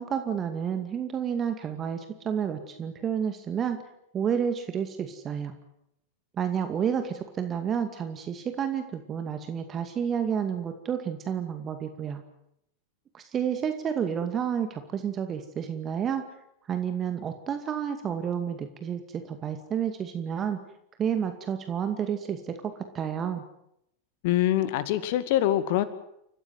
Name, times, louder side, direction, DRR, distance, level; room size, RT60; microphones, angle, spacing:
voice 1, 0.0-3.8 4.1-5.5 6.4-12.2 13.1-16.2 16.7-20.6 21.0-23.4, right 8 dB, 25° right, 7 dB, 2.3 m, -30 dB
voice 2, 24.2-25.8, left 13 dB, 50° left, 13 dB, 2.2 m, -24 dB
29.5 x 15.0 x 9.4 m, 0.78 s
figure-of-eight pair, 90°, 0 cm